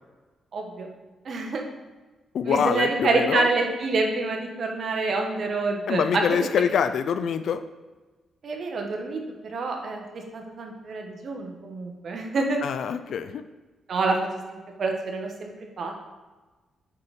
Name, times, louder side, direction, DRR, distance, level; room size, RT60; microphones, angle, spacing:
voice 1, 0.5-0.9 1.2-1.6 2.4-6.3 8.4-12.6 13.9-15.9, right 3 dB, 60° right, 2 dB, 1.4 m, -27 dB
voice 2, 2.3-3.5 5.9-7.7 12.6-13.4, left 7 dB, 75° left, 11 dB, 0.3 m, -25 dB
8.2 x 4.2 x 5.0 m, 1.3 s
cardioid pair, 80°, 0 cm